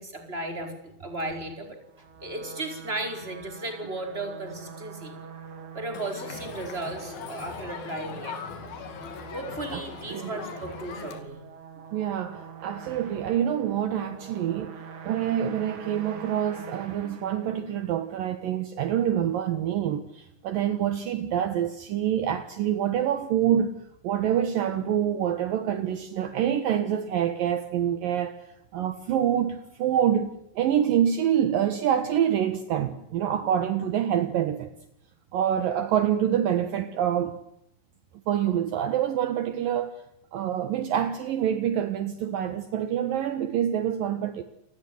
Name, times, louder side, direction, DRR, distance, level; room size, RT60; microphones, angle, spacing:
voice 1, 0.0-1.8 2.2-5.1 5.7-8.4 9.3-11.4, right 2 dB, 15° right, 4.9 m, -35 dB
sound 1, 1.8-18.1, right 7 dB, 85° right, 4.9 m, -45 dB
Crowd, 5.9-11.2, left 6 dB, 70° left, 4.5 m, -40 dB
voice 2, 11.9-14.8 15.1-23.7 24.0-28.3 28.7-34.7 35.3-37.3 38.3-40.0 40.3-44.4, right 10 dB, 65° right, 2.9 m, -26 dB
30.0 x 19.0 x 9.6 m
omnidirectional pair, 4.5 m